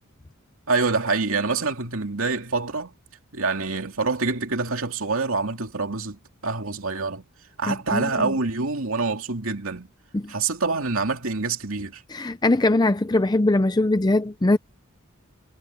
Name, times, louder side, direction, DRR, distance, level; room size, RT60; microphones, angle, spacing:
voice 1, 0.7-2.9 3.3-7.2 7.6-9.9 10.3-12.0, right 4 dB, 65° right, 2.8 m, -26 dB
voice 2, 7.7-8.3 10.1-10.3 12.1-14.6, left 2 dB, 20° left, 0.5 m, -21 dB
head